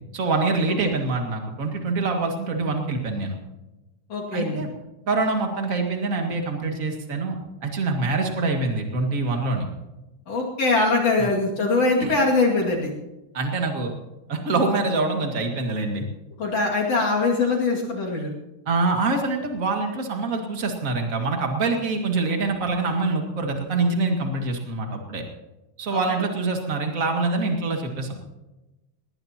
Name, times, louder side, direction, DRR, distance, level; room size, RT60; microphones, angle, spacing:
voice 1, 0.1-3.4 4.3-4.7 5.1-7.3 7.6-9.7 11.2-11.3 12.0-12.1 13.3-13.9 14.3-16.0 18.6-25.2 25.8-28.2, right 3 dB, 40° right, 3 dB, 1.2 m, -25 dB
voice 2, 4.1-4.6 10.3-12.9 16.4-18.3 25.9-26.2, left 3 dB, 45° left, -2 dB, 2.9 m, -22 dB
20.0 x 19.0 x 2.9 m, 1.0 s
omnidirectional pair, 4.8 m